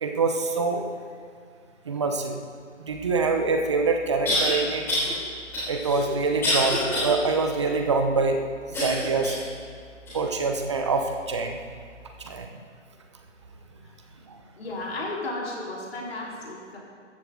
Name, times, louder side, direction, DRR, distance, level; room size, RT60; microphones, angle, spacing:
voice 1, 0.0-0.9 1.8-2.4 2.8-4.8 5.7-8.4 8.7-9.4 10.1-11.6 12.2-12.5 14.2-14.4, right 4 dB, 25° right, 4 dB, 0.9 m, -25 dB
sound 1, 3.2-3.3 4.3-4.5 4.9-5.1 5.5-7.1 7.6-7.7 8.7-9.5 10.1-10.2 10.9-11.0, left 1 dB, 5° left, 3.3 m, -26 dB
voice 2, 14.6-16.8, left 2 dB, 50° left, -4 dB, 4.2 m, -33 dB
16.0 x 13.5 x 3.9 m, 2.1 s
figure-of-eight pair, 160°, 38 cm